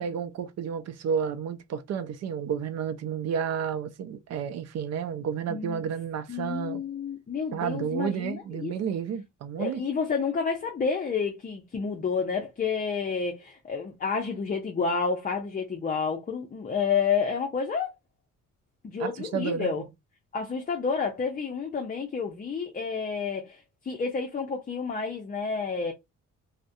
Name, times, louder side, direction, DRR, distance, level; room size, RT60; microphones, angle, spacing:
voice 1, 0.0-6.8 7.5-9.8 19.0-19.8, right 7 dB, 60° right, 0.5 m, -31 dB
voice 2, 5.5-5.8 6.3-8.8 9.6-17.9 18.8-19.8 20.3-25.9, left 5 dB, 30° left, 0.5 m, -30 dB
2.3 x 2.1 x 2.6 m
cardioid pair, 90°, 30 cm